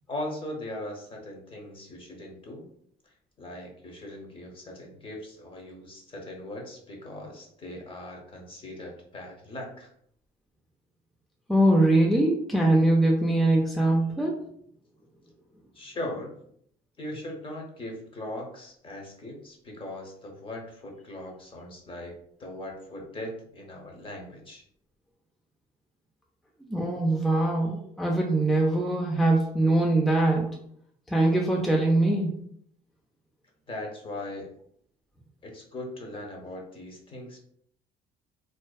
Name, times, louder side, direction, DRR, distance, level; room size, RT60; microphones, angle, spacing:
voice 1, 0.1-2.7 3.4-9.9 15.7-16.3 17.0-22.1 22.4-24.6 33.7-34.5 35.4-37.4, left 1 dB, 30° left, 1 dB, 0.7 m, -39 dB
voice 2, 11.5-14.4 26.7-30.6 31.1-32.3, right 1 dB, ahead, -1 dB, 0.3 m, -22 dB
2.5 x 2.2 x 2.2 m, 0.66 s
cardioid pair, 110°, 17 cm